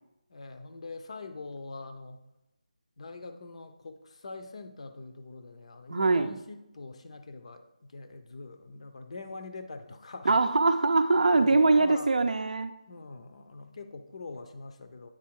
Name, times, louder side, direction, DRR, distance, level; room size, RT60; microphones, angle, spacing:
voice 1, 0.3-2.3 3.0-10.4 11.3-12.1 12.9-15.1, left 3 dB, 50° left, 0.6 m, -43 dB
voice 2, 5.9-6.3 10.3-12.7, right 3 dB, 70° right, 0.5 m, -23 dB
8.7 x 3.3 x 4.6 m
figure-of-eight pair, 165°, 4 cm